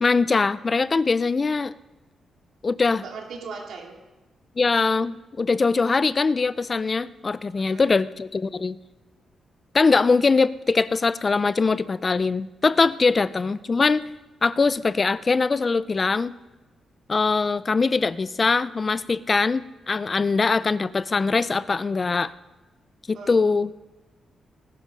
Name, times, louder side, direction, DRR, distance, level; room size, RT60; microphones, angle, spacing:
voice 1, 0.0-1.7 2.6-3.0 4.6-8.8 9.7-14.0 14.4-16.3 17.1-22.3 23.1-23.7, left 4 dB, 30° left, 17 dB, 0.4 m, -22 dB
voice 2, 3.0-3.9 7.6-7.9 23.1-23.4, right 4 dB, 75° right, 1 dB, 2.9 m, -38 dB
19.5 x 11.5 x 5.2 m, 1.1 s
cardioid pair, 110°, 0 cm